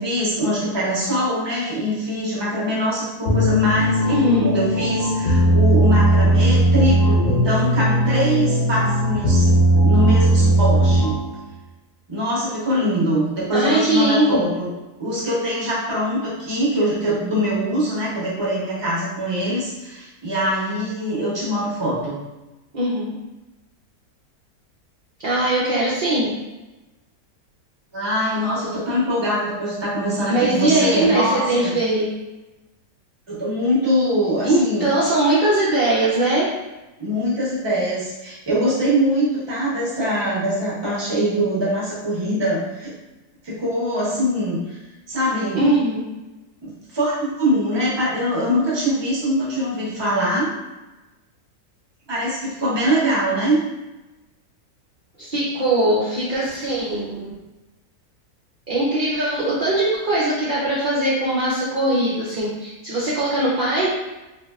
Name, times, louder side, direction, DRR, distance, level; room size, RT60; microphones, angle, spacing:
voice 1, 0.0-11.2 12.1-14.7 15.0-22.2 27.9-31.7 33.3-34.8 37.0-42.9 43.4-44.8 45.1-45.7 46.6-50.5 52.1-53.6, equal, 25° right, -7 dB, 0.7 m, -23 dB
sound 1, 3.2-11.3, right 1 dB, 50° left, 0.8 m, -17 dB
voice 2, 4.1-4.5 13.5-14.5 22.7-23.1 25.2-26.3 30.3-32.1 34.4-36.5 45.6-46.0 55.2-57.3 58.7-63.9, right 1 dB, 65° right, -8 dB, 0.5 m, -20 dB
3.1 x 2.6 x 2.3 m, 1.0 s
omnidirectional pair, 1.6 m